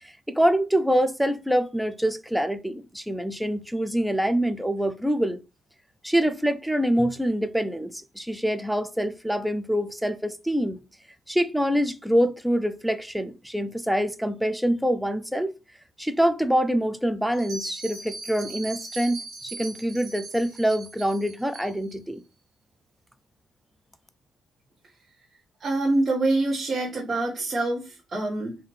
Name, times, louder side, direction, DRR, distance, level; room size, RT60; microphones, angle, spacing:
voice 1, 0.3-5.4 6.0-10.8 11.3-15.5 16.0-22.2, equal, ahead, 0.4 m, -25 dB
Bell, 17.3-22.0, right 3 dB, 70° right, 1.0 m, -40 dB
voice 2, 25.6-28.6, right 2 dB, 45° right, 1.3 m, -25 dB
3.7 x 2.7 x 3.2 m
cardioid pair, 90°, 0 cm